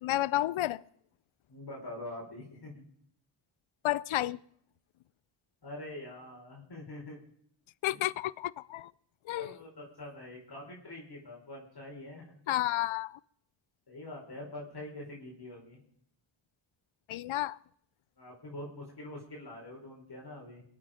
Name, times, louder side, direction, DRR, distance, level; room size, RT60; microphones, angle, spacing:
voice 1, 0.0-0.8 3.8-4.4 7.8-8.9 9.3-9.6 12.5-13.2 17.1-17.6, left 15 dB, 75° left, 0.6 m, -31 dB
voice 2, 1.5-2.8 5.6-7.2 7.9-8.0 9.3-12.4 13.9-15.8 18.2-20.6, left 1 dB, 50° left, 4.7 m, -45 dB
23.0 x 8.6 x 5.1 m
cardioid pair, 60°, 48 cm